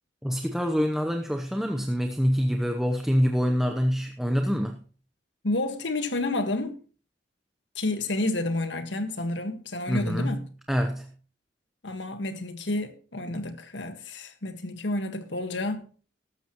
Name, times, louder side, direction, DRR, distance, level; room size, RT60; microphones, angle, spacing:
voice 1, 0.2-4.8 9.9-10.4 10.7-11.1, equal, ahead, 0.8 m, -25 dB
voice 2, 5.4-6.8 7.7-10.5 11.8-15.9, left 2 dB, 75° left, 1.6 m, -30 dB
14.0 x 12.5 x 3.0 m
head